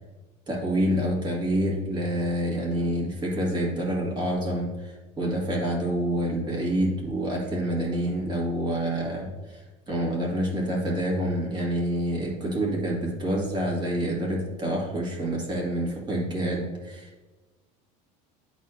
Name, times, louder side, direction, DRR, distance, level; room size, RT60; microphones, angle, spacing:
voice 1, 0.5-17.2, right 1 dB, 25° right, -2 dB, 1.8 m, -27 dB
10.0 x 4.1 x 2.5 m, 1.2 s
cardioid pair, 135°, 17 cm